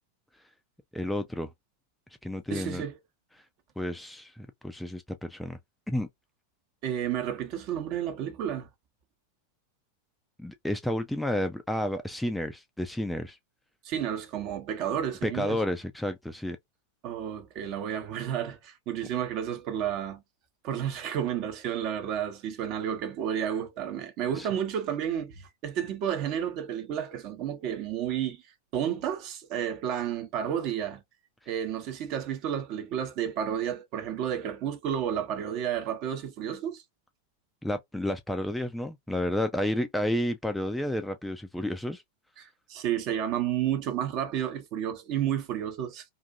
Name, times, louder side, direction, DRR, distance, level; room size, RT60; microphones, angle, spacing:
voice 1, 0.9-1.5 2.2-2.8 3.8-5.6 5.9-6.1 10.4-13.4 15.2-16.6 24.4-24.5 37.6-42.0, left 1 dB, 5° left, 0.3 m, -31 dB
voice 2, 2.5-2.9 6.8-8.7 13.8-15.6 17.0-20.2 20.6-28.4 28.7-31.0 31.5-36.8 42.4-46.0, right 9 dB, 40° right, 0.8 m, -31 dB
2.5 x 2.4 x 2.4 m
figure-of-eight pair, 90°, 0 cm